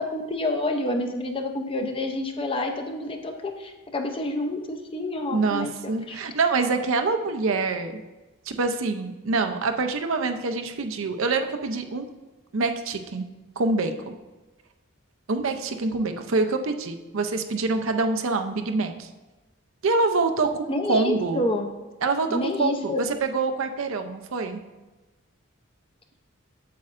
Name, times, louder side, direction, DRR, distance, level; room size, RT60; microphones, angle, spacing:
voice 1, 0.0-5.7 6.1-6.2 20.7-21.7 22.3-23.0, left 1 dB, 25° left, 4 dB, 0.6 m, -28 dB
voice 2, 5.3-8.0 8.5-12.1 12.5-13.3 13.6-14.1 15.3-19.1 19.8-21.4 22.0-24.6, right 3 dB, 75° right, 7 dB, 0.6 m, -25 dB
8.4 x 7.4 x 2.5 m, 1.2 s
head